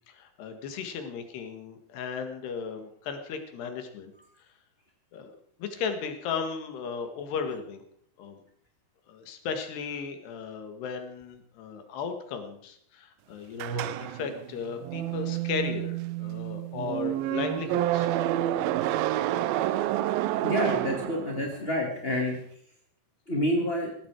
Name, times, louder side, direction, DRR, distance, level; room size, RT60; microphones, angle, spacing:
voice 1, 0.1-4.1 5.1-5.3 5.6-7.8 8.2-8.4 9.1-18.1, left 6 dB, 85° left, 7 dB, 4.1 m, -35 dB
sound 1, 13.6-21.6, right 13 dB, 75° right, 2.3 m, -29 dB
voice 2, 20.4-22.4 23.3-23.9, left 1 dB, 25° left, 0 dB, 1.2 m, -28 dB
18.5 x 15.0 x 4.8 m, 0.65 s
omnidirectional pair, 4.6 m